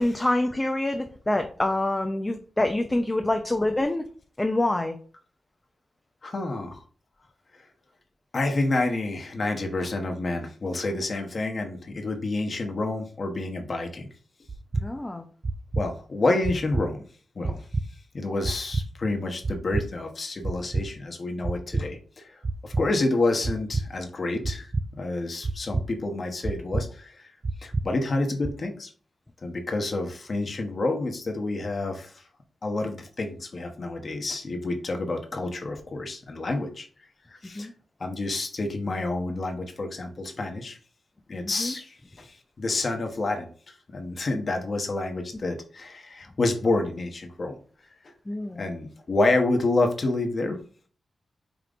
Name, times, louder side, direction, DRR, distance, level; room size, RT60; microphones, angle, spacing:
voice 1, 0.0-4.0 4.4-5.0 14.8-15.2 37.6-37.7 41.6-41.7 48.3-48.6, left 1 dB, 20° left, 5 dB, 0.4 m, -26 dB
voice 2, 6.2-6.8 8.3-14.1 15.8-17.0 17.3-17.6 18.1-22.4 22.6-27.3 27.6-28.9 29.4-32.2 32.6-36.9 37.3-37.7 38.0-40.8 41.3-47.6 48.6-50.6, left 2 dB, 50° left, 4 dB, 0.9 m, -28 dB
sound 1, 14.5-14.9 15.4-15.9 16.4-16.9 17.4-17.9 18.4-18.9 19.4-19.9 20.4-20.9 21.4-21.9 22.4-22.9 23.4-23.9 24.4-24.9 25.4-25.9 26.4-26.9 27.4-27.9 28.4-28.5, right 3 dB, 45° right, 0.3 m, -27 dB
5.1 x 2.9 x 2.5 m, 0.42 s
cardioid pair, 80°, 0 cm